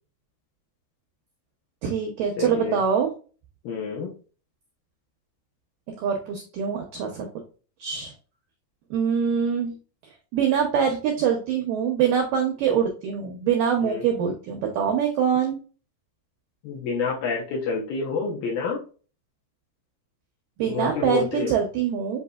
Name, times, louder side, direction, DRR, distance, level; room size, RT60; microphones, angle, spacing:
voice 1, 1.8-3.1 6.0-7.3 7.8-8.1 8.9-9.8 10.3-15.6 20.6-22.2, right 7 dB, 90° right, 2 dB, 1.9 m, -24 dB
voice 2, 2.4-2.8 3.6-4.1 13.8-14.1 16.6-18.8 20.7-21.5, left 4 dB, 75° left, -2 dB, 2.3 m, -28 dB
8.1 x 2.8 x 2.3 m, 0.37 s
omnidirectional pair, 4.9 m